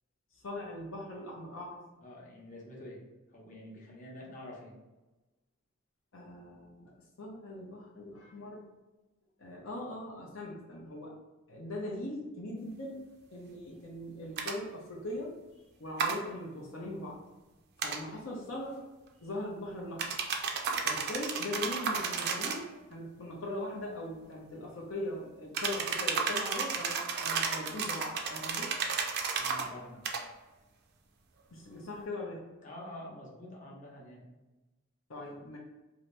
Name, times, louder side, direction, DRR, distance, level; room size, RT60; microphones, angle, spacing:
voice 1, 0.3-1.8 6.1-8.7 9.4-11.2 11.5-13.0 13.3-15.4 15.8-17.2 17.8-18.8 19.2-20.2 20.8-28.7 31.5-32.4 35.1-35.6, left 1 dB, 75° left, -3 dB, 0.6 m, -40 dB
voice 2, 2.0-3.0 3.3-4.7 29.4-30.0 32.6-34.2, left 1 dB, 40° left, -4 dB, 0.8 m, -47 dB
sound 1, 14.4-14.5 16.0-16.2 17.8-18.0 20.0-22.6 25.5-29.7 30.0-30.2, right 5 dB, 55° right, 0.4 m, -33 dB
2.7 x 2.6 x 3.2 m, 1.1 s
head